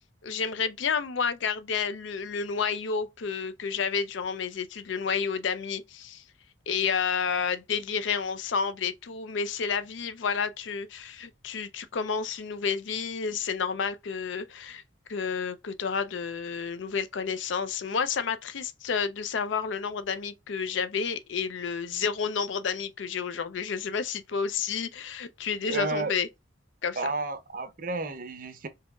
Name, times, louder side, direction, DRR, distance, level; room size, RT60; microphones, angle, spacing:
voice 1, 0.2-6.2 6.7-14.8 15.1-26.3 26.8-27.1, left 6 dB, 70° left, 0.5 m, -30 dB
voice 2, 25.7-26.1 27.0-28.7, right 3 dB, 45° right, 0.6 m, -31 dB
4.7 x 2.9 x 2.3 m
head